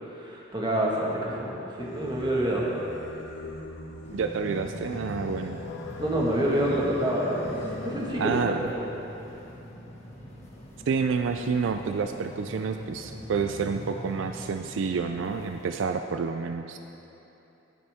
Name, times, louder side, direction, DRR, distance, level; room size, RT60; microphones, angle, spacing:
voice 1, 0.1-2.6 6.0-8.9, right 1 dB, 20° right, -4 dB, 1.4 m, -27 dB
Singing, 1.8-8.5, left 2 dB, 70° left, 0.9 m, -40 dB
sound 1, 4.0-15.7, equal, 35° left, 1.6 m, -42 dB
voice 2, 4.1-5.6 8.2-8.7 10.9-16.8, right 5 dB, 70° right, 6 dB, 0.4 m, -29 dB
18.0 x 7.1 x 3.5 m, 3.0 s
head